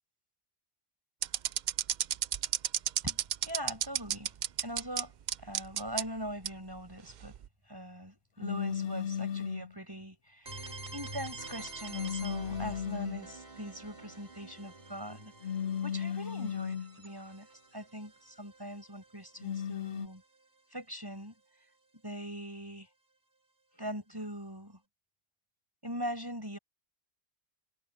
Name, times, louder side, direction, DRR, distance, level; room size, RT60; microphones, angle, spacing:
sound 1, 1.2-5.0 5.3-6.0 6.4-6.5 7.2-7.5, right 10 dB, 60° right, 0.5 m, -30 dB
voice 1, 3.0-5.1 5.4-7.4 7.7-15.6 15.8-20.2 20.7-21.3 22.0-22.9 23.7-24.8 25.8-26.6, equal, 20° right, 6.6 m, -42 dB
sound 2, 8.4-9.7 11.9-13.3 15.4-17.0 19.4-20.1, left 8 dB, 65° left, 0.8 m, -35 dB
sound 3, 10.5-20.2, right 2 dB, 40° right, 2.4 m, -48 dB
omnidirectional pair, 1.2 m